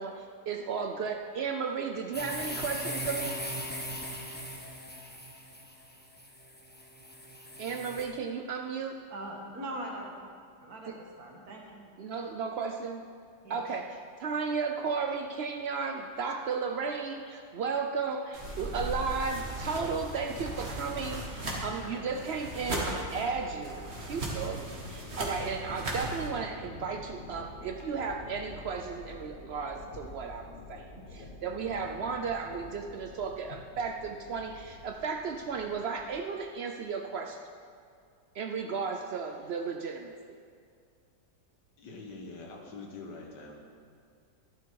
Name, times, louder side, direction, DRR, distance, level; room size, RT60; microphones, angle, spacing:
voice 1, 0.0-3.4 7.6-9.0 10.9-11.0 12.0-13.1 13.5-37.4 38.3-40.2, right 5 dB, 80° right, 4 dB, 0.5 m, -34 dB
sound 1, 2.1-8.0, equal, 5° left, 0.9 m, -39 dB
voice 2, 9.1-10.1 10.6-11.9 13.4-13.6, right 1 dB, 60° right, 0 dB, 2.2 m, -41 dB
sound 2, 18.3-26.3, right 1 dB, 40° right, 1.9 m, -37 dB
sound 3, 18.5-36.2, left 2 dB, 35° left, 1.2 m, -48 dB
voice 3, 41.8-43.6, left 3 dB, 75° left, 1 dB, 1.9 m, -44 dB
12.5 x 11.0 x 4.7 m, 2.2 s
omnidirectional pair, 1.9 m